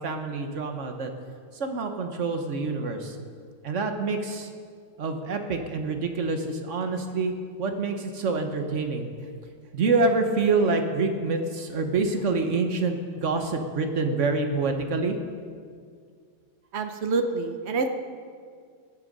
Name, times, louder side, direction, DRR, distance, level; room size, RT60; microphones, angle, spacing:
voice 1, 0.0-1.1 1.6-3.1 3.6-4.5 5.0-7.3 7.6-9.1 9.7-15.2, right 3 dB, 45° right, 5 dB, 1.1 m, -26 dB
voice 2, 16.7-17.9, right 4 dB, 65° right, 6 dB, 0.6 m, -27 dB
17.0 x 10.5 x 5.3 m, 2.1 s
omnidirectional pair, 2.3 m